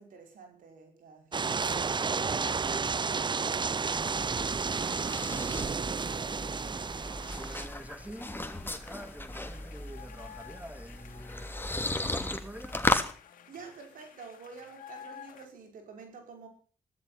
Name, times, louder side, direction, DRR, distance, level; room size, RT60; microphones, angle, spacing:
voice 1, 0.0-4.3 13.5-16.5, right 5 dB, 80° right, 5.5 m, -49 dB
sound 1, 1.3-7.7, right 5 dB, 35° right, 0.6 m, -31 dB
sound 2, 3.5-13.1, left 2 dB, 15° left, 2.8 m, -36 dB
sound 3, 6.2-15.5, left 9 dB, 80° left, 2.7 m, -53 dB
voice 2, 7.4-11.5 12.0-12.8, right 1 dB, 10° right, 3.0 m, -46 dB
15.5 x 13.5 x 5.9 m
supercardioid pair, 50°, 14 cm